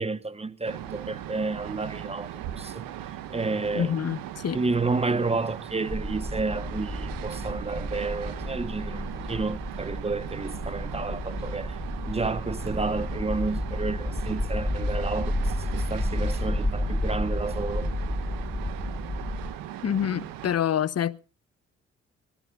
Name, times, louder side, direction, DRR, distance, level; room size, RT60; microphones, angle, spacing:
voice 1, 0.0-2.9 3.3-3.9 4.5-11.8 12.1-17.9, right 3 dB, 15° right, 1.2 m, -31 dB
sound 1, 0.7-20.6, right 12 dB, 75° right, 1.3 m, -39 dB
voice 2, 3.7-4.6 19.8-21.2, left 9 dB, 45° left, 0.9 m, -27 dB
sound 2, 5.9-19.5, left 1 dB, 10° left, 1.3 m, -31 dB
24.5 x 18.5 x 2.5 m
hypercardioid pair, 45°, 34 cm